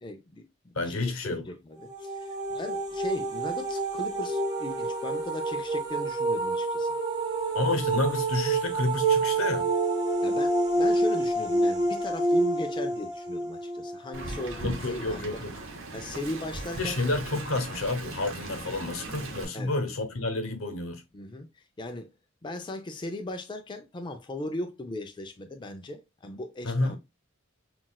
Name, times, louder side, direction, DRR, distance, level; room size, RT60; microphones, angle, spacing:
voice 1, 0.0-7.0 10.2-15.4 15.9-17.0 19.5-19.8 21.1-22.1 22.4-27.0, left 1 dB, 25° left, 0.4 m, -38 dB
voice 2, 0.7-1.4 7.5-9.7 14.6-15.5 16.8-21.0 26.6-27.0, left 2 dB, 85° left, 0.9 m, -30 dB
sound 1, 1.8-14.6, right 2 dB, 20° right, 1.1 m, -28 dB
Wind, 14.1-19.4, right 2 dB, 80° right, 1.0 m, -39 dB
5.9 x 2.4 x 2.2 m
head